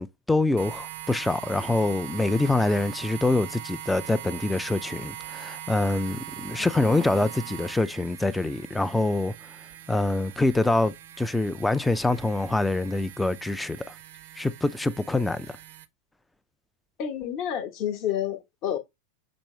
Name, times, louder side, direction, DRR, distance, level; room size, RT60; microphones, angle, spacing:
voice 1, 0.0-9.3 9.9-13.8 14.4-15.6, left 2 dB, 5° left, 0.3 m, -25 dB
sound 1, 0.6-15.9, right 13 dB, 55° right, 0.5 m, -41 dB
voice 2, 6.6-7.5 17.0-18.8, left 10 dB, 40° left, 0.9 m, -31 dB
6.2 x 2.9 x 2.9 m
figure-of-eight pair, 90°, 0 cm